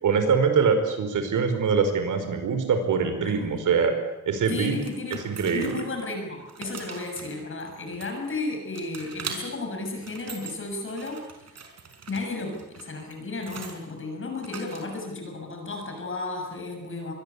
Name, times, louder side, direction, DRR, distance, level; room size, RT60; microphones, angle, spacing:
voice 1, 0.0-3.9 4.2-4.8 5.1-5.8, right 5 dB, 85° right, 7 dB, 4.9 m, -23 dB
voice 2, 3.2-3.7 4.5-11.6 12.1-17.1, left 3 dB, 40° left, 3 dB, 6.8 m, -34 dB
sound 1, 4.5-6.0 6.4-8.4 8.8-9.4 9.9-10.5 10.9-13.8 14.4-15.1, right 5 dB, 60° right, 5.1 m, -41 dB
25.5 x 22.0 x 8.4 m, 1.0 s
wide cardioid pair, 160°, 30 cm